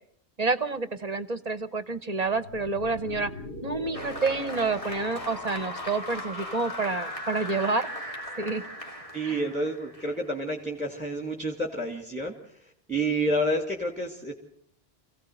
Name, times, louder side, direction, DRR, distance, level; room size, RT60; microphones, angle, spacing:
voice 1, 0.4-3.3 3.6-7.9 8.4-8.6 9.2-9.4, right 3 dB, 40° right, 15 dB, 1.1 m, -28 dB
sound 1, 2.3-10.3, left 1 dB, 70° left, 7.6 m, -40 dB
Applause, 3.9-11.1, left 1 dB, 30° left, 2.9 m, -41 dB
voice 2, 9.1-12.3 12.6-14.3, right 1 dB, 5° right, 3 dB, 2.3 m, -29 dB
26.5 x 16.5 x 7.9 m, 0.65 s
omnidirectional pair, 1.1 m